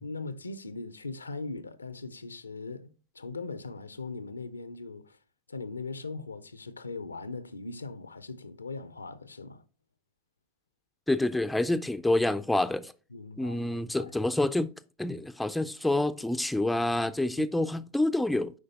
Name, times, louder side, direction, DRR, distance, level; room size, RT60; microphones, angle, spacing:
voice 1, 0.0-5.2 5.5-9.6 13.1-13.6 14.0-14.1 17.4-17.5, left 3 dB, 75° left, 0.5 m, -40 dB
voice 2, 11.1-12.9 13.4-14.7 15.0-18.5, left 2 dB, 5° left, 0.3 m, -27 dB
7.9 x 5.0 x 2.7 m
figure-of-eight pair, 90°, 0 cm